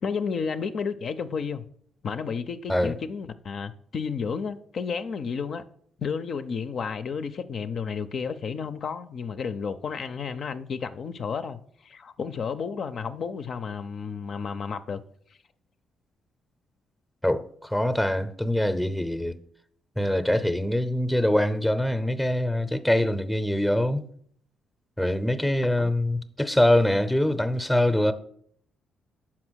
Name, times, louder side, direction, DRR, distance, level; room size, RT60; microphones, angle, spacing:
voice 1, 0.0-1.6 2.0-5.6 6.0-15.0 25.8-25.9, left 6 dB, 55° left, 0.4 m, -32 dB
voice 2, 17.2-19.4 20.0-24.1 25.0-28.1, left 1 dB, ahead, 0.6 m, -24 dB
5.8 x 4.9 x 6.2 m
cardioid pair, 90°, 0 cm